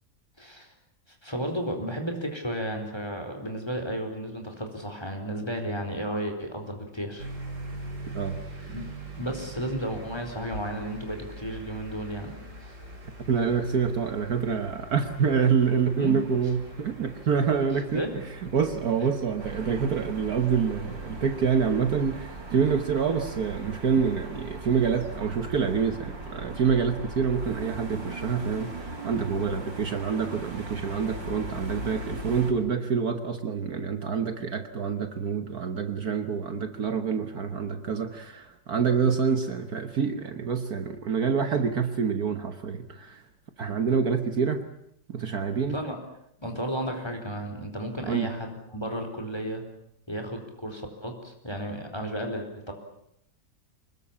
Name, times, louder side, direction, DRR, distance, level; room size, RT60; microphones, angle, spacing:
voice 1, 0.4-0.7 1.2-7.3 8.7-8.8 9.2-12.3 15.9-16.2 17.9-18.1 45.6-46.0 46.4-49.6 50.1-52.7, equal, 15° left, 4 dB, 4.4 m, -33 dB
sound 1, 7.2-26.0, right 2 dB, 40° right, 4.2 m, -44 dB
voice 2, 8.1-8.7 13.3-18.0 18.4-43.2 43.6-44.6 45.1-45.8 48.0-48.3, right 6 dB, 55° right, 8 dB, 1.7 m, -27 dB
sound 2, 19.4-32.5, right 2 dB, 85° right, 5.0 m, -39 dB
25.0 x 21.0 x 8.7 m, 0.74 s
omnidirectional pair, 2.0 m